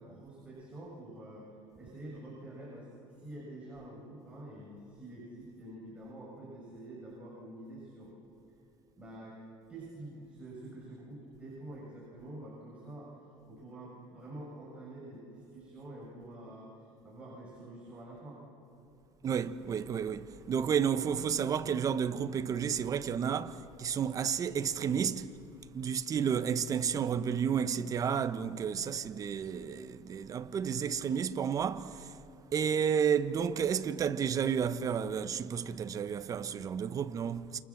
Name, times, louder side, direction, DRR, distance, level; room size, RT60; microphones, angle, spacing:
voice 1, 0.0-1.5 1.8-8.1 9.0-9.4 9.7-13.2 13.5-18.4, right 1 dB, 10° right, 6.8 m, -47 dB
voice 2, 19.2-25.3 25.7-32.1 32.5-37.6, right 7 dB, 30° right, 1.1 m, -31 dB
28.5 x 28.0 x 7.4 m
cardioid pair, 130°, 11 cm